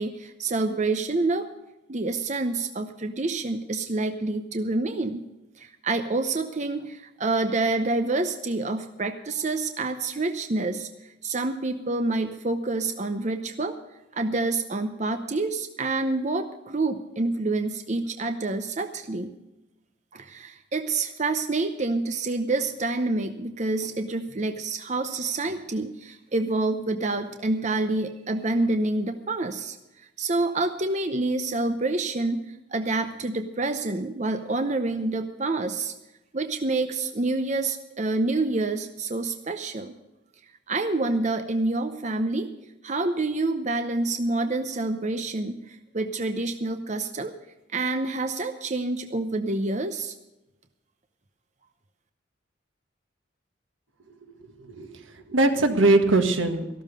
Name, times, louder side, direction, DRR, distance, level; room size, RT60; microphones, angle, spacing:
voice 1, 0.0-1.5 1.9-5.2 5.6-13.8 14.1-19.3 20.1-35.9 36.3-40.0 40.7-42.5 42.8-47.3 47.7-50.1, right 2 dB, 35° right, 8 dB, 0.7 m, -27 dB
voice 2, 54.6-56.7, right 2 dB, 80° right, 6 dB, 1.6 m, -21 dB
14.0 x 12.5 x 5.2 m, 0.99 s
head